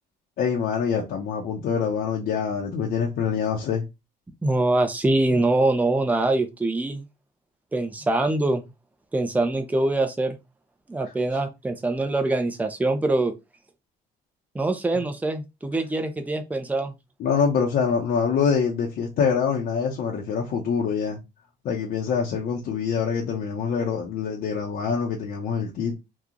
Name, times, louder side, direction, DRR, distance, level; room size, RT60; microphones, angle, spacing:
voice 1, 0.4-3.8 14.9-15.0 17.2-21.2 21.6-26.0, left 6 dB, 65° left, 0.9 m, -25 dB
voice 2, 4.4-7.0 7.7-8.6 9.1-10.4 10.9-13.3 14.5-16.9, right 2 dB, 10° right, 0.6 m, -24 dB
3.0 x 2.4 x 3.7 m
cardioid pair, 110°, 17 cm